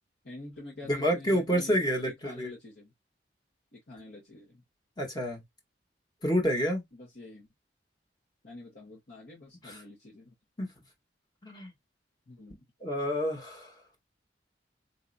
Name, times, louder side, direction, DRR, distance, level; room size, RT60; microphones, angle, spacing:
voice 1, 0.2-2.9 3.7-4.6 6.9-7.5 8.4-10.3 12.3-12.6, left 2 dB, 60° left, 1.4 m, -47 dB
voice 2, 0.9-2.5 5.0-5.4 6.2-6.8 9.6-9.8 10.6-10.7 11.4-11.7 12.8-13.7, equal, 25° left, 1.2 m, -28 dB
4.1 x 2.8 x 2.4 m
head